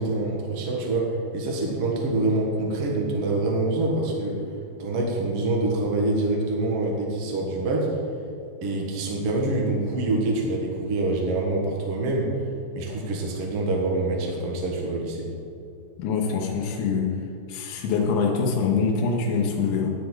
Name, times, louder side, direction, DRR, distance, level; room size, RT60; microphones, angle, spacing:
voice 1, 0.0-4.4 4.8-7.9 8.6-12.4 12.7-15.3, right 2 dB, 85° right, -2 dB, 1.3 m, -25 dB
voice 2, 16.0-17.1 17.5-19.9, left 5 dB, 80° left, 0 dB, 3.4 m, -24 dB
12.0 x 10.5 x 4.0 m, 2.5 s
omnidirectional pair, 5.4 m